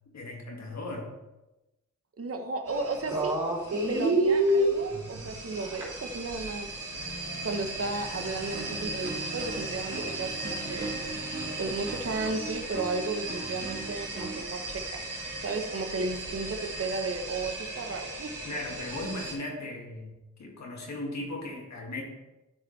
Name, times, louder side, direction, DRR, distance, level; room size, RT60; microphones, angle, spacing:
voice 1, 0.1-1.1 18.4-22.0, left 2 dB, 65° left, 0 dB, 2.2 m, -37 dB
voice 2, 2.2-3.3 3.9-6.7 7.4-11.0 11.6-15.0 15.4-18.3, right 3 dB, 50° right, 5 dB, 1.1 m, -34 dB
sound 1, 2.7-19.3, right 1 dB, 90° right, 3.2 m, -33 dB
sound 2, 6.9-12.1, left 1 dB, 85° left, 1.8 m, -45 dB
sound 3, 8.5-14.5, right 3 dB, 35° right, 2.0 m, -40 dB
12.0 x 5.1 x 3.3 m, 0.99 s
cardioid pair, 55°, 30 cm